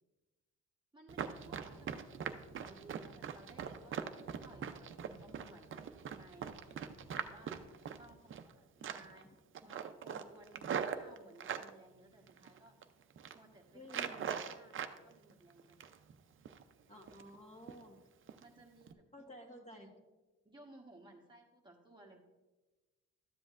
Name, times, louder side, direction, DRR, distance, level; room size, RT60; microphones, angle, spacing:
voice 1, 0.9-7.6 7.9-9.3 9.6-12.7 13.3-15.9 16.3-16.5 18.4-19.0 19.7-19.9 20.4-22.2, right 2 dB, 15° right, -1 dB, 1.2 m, -59 dB
Run, 1.1-8.5 8.8-9.2 9.5-11.7 12.3-12.8 13.1-13.4 13.9-15.0 15.3-16.1 16.5-16.6 17.0-17.4 17.7-17.8 18.3-18.4 18.8-18.9, right 7 dB, 40° right, 0.6 m, -42 dB
voice 2, 1.6-2.0 13.7-14.4 16.9-18.0 19.1-19.9, equal, 25° left, 1 dB, 1.6 m, -54 dB
13.0 x 7.5 x 2.5 m, 1.2 s
cardioid pair, 90°, 30 cm